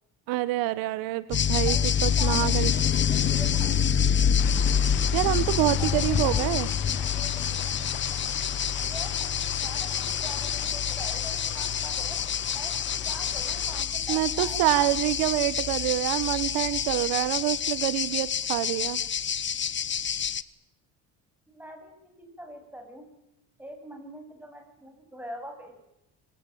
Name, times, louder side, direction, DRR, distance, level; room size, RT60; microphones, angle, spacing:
voice 1, 0.3-2.7 5.1-6.7 14.1-19.0, right 17 dB, 90° right, 15 dB, 1.6 m, -26 dB
sound 1, 1.3-20.4, left 8 dB, 35° left, 1.2 m, -27 dB
voice 2, 2.2-3.8 5.8-7.5 8.0-8.1 8.9-12.2 12.5-12.7 13.0-14.9 21.5-23.1 23.6-25.8, equal, 5° right, 3 dB, 7.9 m, -44 dB
sound 2, 4.4-13.8, left 15 dB, 75° left, 1.7 m, -41 dB
26.5 x 21.5 x 9.0 m, 0.91 s
cardioid pair, 115°, 34 cm